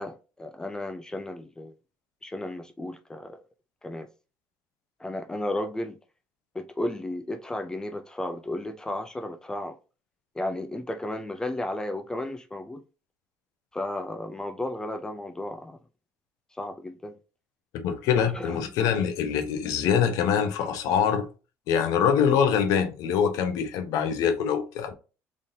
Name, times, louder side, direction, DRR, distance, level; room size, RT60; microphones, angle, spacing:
voice 1, 0.0-1.7 2.2-3.4 3.8-4.1 5.0-6.0 6.5-9.8 10.3-12.8 13.7-15.8 16.5-17.1 18.2-18.8, left 1 dB, 10° left, 0.3 m, -34 dB
voice 2, 17.8-21.3 21.7-24.9, left 7 dB, 70° left, 0.8 m, -24 dB
3.8 x 3.6 x 2.7 m
cardioid pair, 145°, 6 cm